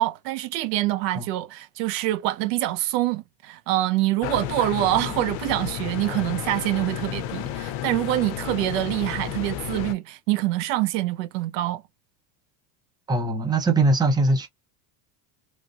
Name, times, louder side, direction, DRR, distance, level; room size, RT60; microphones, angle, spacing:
voice 1, 0.0-11.8, right 16 dB, 75° right, 0.7 m, -25 dB
sound 1, 4.2-9.9, left 12 dB, 70° left, 0.6 m, -32 dB
voice 2, 13.1-14.5, right 2 dB, 10° right, 0.6 m, -21 dB
3.2 x 2.6 x 2.4 m
supercardioid pair, 130°, 50 cm